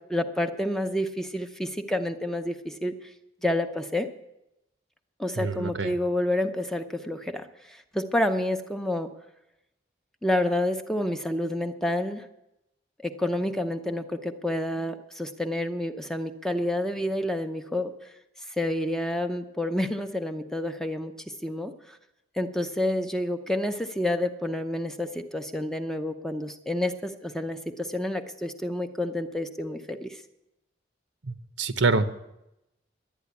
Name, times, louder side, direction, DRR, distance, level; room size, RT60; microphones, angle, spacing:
voice 1, 0.1-2.9 3.4-4.1 5.2-9.1 10.2-12.3 13.0-17.9 18.6-21.1 21.4-22.0 22.4-30.2, left 1 dB, 5° left, 6 dB, 0.6 m, -29 dB
voice 2, 5.4-6.0 31.2-32.1, right 3 dB, 80° right, 9 dB, 1.0 m, -26 dB
12.0 x 9.4 x 8.3 m, 0.88 s
head